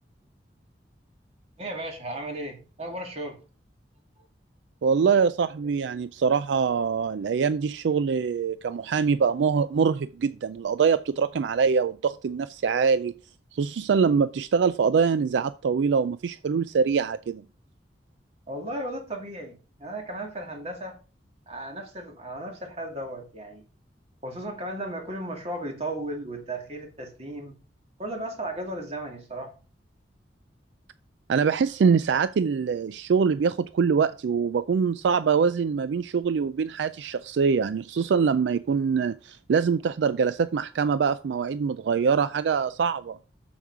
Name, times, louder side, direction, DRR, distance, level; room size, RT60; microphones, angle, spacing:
voice 1, 1.6-3.4 18.5-21.0 21.5-23.6 24.2-27.6 28.0-29.5, right 1 dB, 35° right, 2.2 m, -35 dB
voice 2, 4.8-13.2 13.5-17.4 31.3-43.2, right 6 dB, 80° right, 0.4 m, -24 dB
7.2 x 7.1 x 4.7 m
head